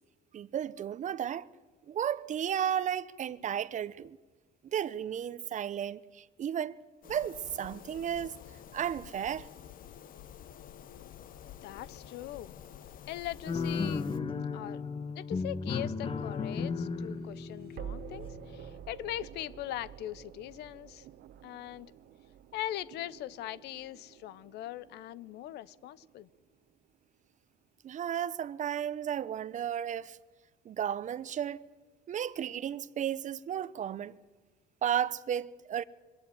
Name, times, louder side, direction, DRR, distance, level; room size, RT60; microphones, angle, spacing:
voice 1, 0.3-1.5 1.9-4.2 4.6-6.8 7.0-8.3 8.7-9.5 27.8-30.2 30.6-31.6 32.1-34.1 34.8-35.8, right 9 dB, 45° right, 0.8 m, -33 dB
sound 1, 7.0-14.2, left 9 dB, 55° left, 1.0 m, -50 dB
voice 2, 11.6-12.5 13.1-14.1 14.5-14.8 15.1-21.1 21.4-21.9 22.5-26.3, left 13 dB, 80° left, 0.8 m, -41 dB
sound 2, 13.5-18.8, left 4 dB, 30° left, 1.2 m, -35 dB
sound 3, 15.9-27.0, right 9 dB, 70° right, 1.1 m, -50 dB
23.0 x 17.0 x 9.8 m
cardioid pair, 110°, 17 cm